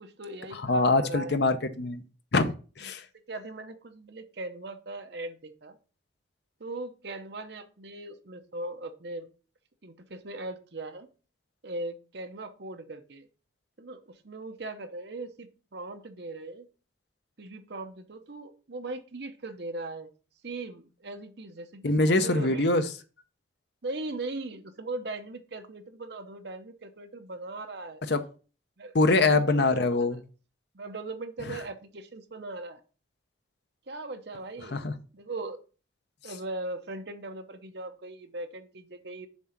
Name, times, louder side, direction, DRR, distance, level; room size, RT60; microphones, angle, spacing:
voice 1, 0.0-1.4 2.8-2.9 3.3-5.8 6.6-9.3 9.8-11.1 11.6-13.3 13.8-16.7 17.4-20.1 20.4-22.9 23.8-28.0 28.8-29.7 30.7-32.8 33.9-34.9 35.1-35.6 36.2-39.3, right 2 dB, 55° right, 7 dB, 0.9 m, -39 dB
voice 2, 0.6-2.0 2.3-3.0 21.8-22.8 28.1-28.2 28.9-30.2 34.7-34.9, left 2 dB, 55° left, 9 dB, 0.7 m, -24 dB
7.2 x 3.8 x 5.9 m, 0.36 s
head